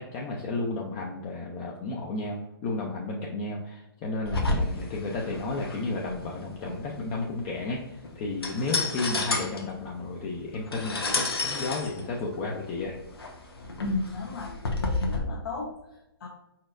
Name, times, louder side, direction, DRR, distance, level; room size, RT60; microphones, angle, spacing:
voice 1, 0.0-12.9, left 3 dB, 25° left, -1 dB, 0.6 m, -33 dB
sound 1, 4.3-15.2, left 2 dB, 90° left, 1.1 m, -32 dB
voice 2, 13.8-16.3, left 3 dB, 60° left, -2 dB, 1.0 m, -34 dB
4.8 x 4.3 x 2.6 m, 0.93 s
hypercardioid pair, 135°, 12 cm